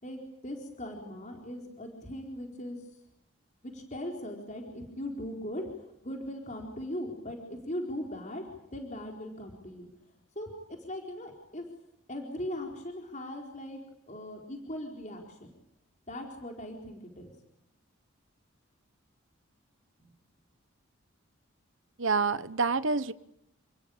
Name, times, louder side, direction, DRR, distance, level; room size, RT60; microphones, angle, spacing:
voice 1, 0.0-2.8 3.6-5.6 6.0-8.4 8.7-9.9 10.4-11.6 12.1-13.8 14.1-15.5 16.1-17.3, left 1 dB, 35° left, 4.4 m, -39 dB
voice 2, 22.0-23.1, right 4 dB, 65° right, 1.1 m, -27 dB
29.5 x 20.5 x 8.8 m
head